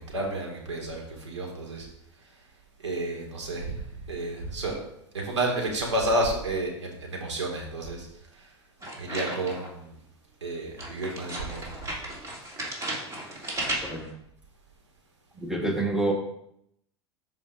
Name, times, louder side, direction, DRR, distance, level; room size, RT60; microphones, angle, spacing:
voice 1, 0.0-1.9 2.8-3.8 4.1-4.8 5.1-8.1 9.0-9.9 10.4-11.7, right 1 dB, 80° right, 0 dB, 2.3 m, -30 dB
sound 1, 8.8-9.8 10.8-14.1, right 1 dB, 20° right, 2.7 m, -35 dB
voice 2, 15.4-16.1, right 2 dB, 5° right, 1 dB, 1.4 m, -27 dB
13.0 x 5.0 x 2.7 m, 0.75 s
figure-of-eight pair, 85°, 15 cm